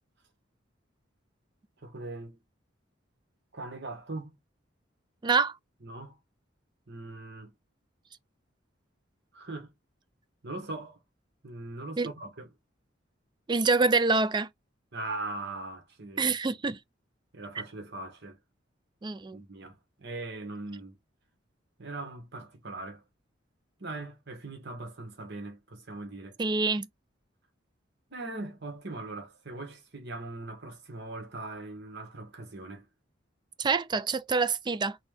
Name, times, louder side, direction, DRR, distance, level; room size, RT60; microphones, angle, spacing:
voice 1, 1.8-2.4 3.5-4.3 5.8-6.2 6.9-7.5 9.3-9.7 10.4-11.0 11.4-12.5 14.9-16.6 17.3-18.4 19.3-21.0 21.8-23.0 23.8-26.4 28.1-32.8, right 2 dB, 60° right, 1.6 m, -40 dB
voice 2, 5.2-5.6 12.0-12.1 13.5-14.5 16.2-16.8 19.0-19.4 26.4-26.9 33.6-35.0, right 4 dB, 25° right, 0.3 m, -26 dB
4.1 x 2.7 x 3.4 m
head